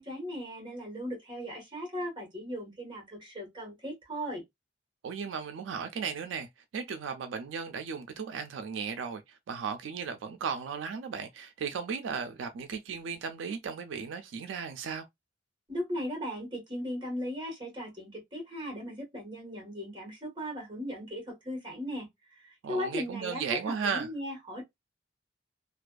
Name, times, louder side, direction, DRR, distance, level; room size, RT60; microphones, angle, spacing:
voice 1, 0.0-4.4 15.7-24.6, equal, 25° right, 1.2 m, -37 dB
voice 2, 5.0-15.1 22.6-24.1, right 6 dB, 85° right, 0.3 m, -36 dB
2.5 x 2.3 x 2.2 m
head